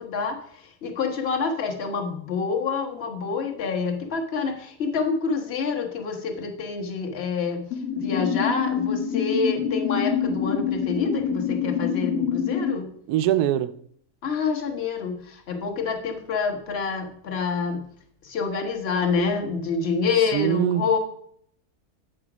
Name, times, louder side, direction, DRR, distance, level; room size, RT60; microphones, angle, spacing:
voice 1, 0.0-7.6 7.9-12.9 14.2-17.9 18.2-21.0, left 5 dB, 45° left, 1.3 m, -27 dB
sound 1, 7.7-12.7, left 7 dB, 80° left, 1.2 m, -26 dB
voice 2, 13.1-13.7 20.3-21.0, right 11 dB, 85° right, 1.1 m, -23 dB
7.9 x 5.0 x 6.0 m
omnidirectional pair, 1.6 m